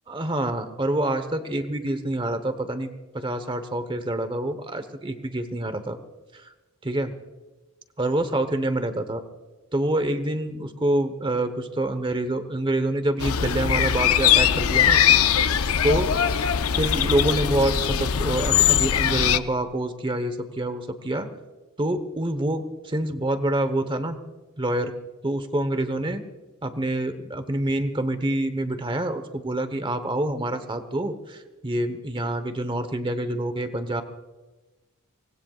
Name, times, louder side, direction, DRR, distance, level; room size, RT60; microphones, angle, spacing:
voice 1, 0.1-2.9 3.1-6.0 6.8-7.1 8.0-9.2 9.7-15.0 15.8-16.1 16.8-21.3 21.8-24.2 24.6-24.9 25.2-26.2 26.6-34.0, right 1 dB, 20° right, 10 dB, 1.1 m, -26 dB
sound 1, 13.2-19.4, left 9 dB, 70° left, 0.6 m, -21 dB
25.0 x 19.5 x 2.5 m, 1.2 s
head